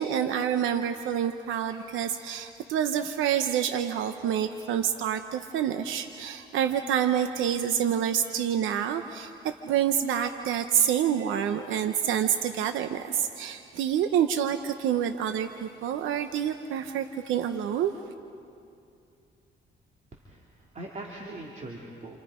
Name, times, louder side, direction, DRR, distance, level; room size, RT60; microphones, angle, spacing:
voice 1, 0.0-9.3 9.6-17.9, right 9 dB, 85° right, 8 dB, 0.9 m, -27 dB
voice 2, 20.1-22.2, right 2 dB, 35° right, -1 dB, 2.9 m, -41 dB
28.5 x 28.0 x 5.1 m, 2.5 s
cardioid pair, 90°, 20 cm